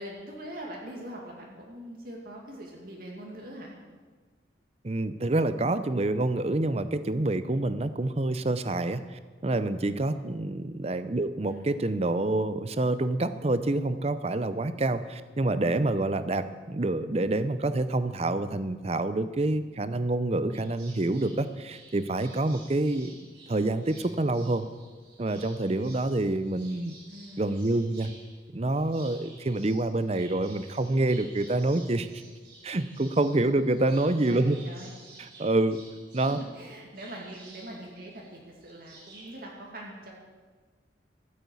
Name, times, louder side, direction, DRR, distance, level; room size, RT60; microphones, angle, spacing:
voice 1, 0.0-3.7 11.5-11.7 27.1-27.5 34.2-34.9 36.3-40.1, right 1 dB, 50° right, -1 dB, 2.3 m, -42 dB
voice 2, 4.8-23.1 23.5-24.7 25.2-27.0 27.4-28.1 28.5-32.2 32.6-34.6 35.2-35.8 36.1-36.4, right 2 dB, 35° right, 12 dB, 0.6 m, -27 dB
sound 1, 20.5-39.4, right 2 dB, 70° right, 4.3 m, -53 dB
13.5 x 8.6 x 8.4 m, 1.4 s
head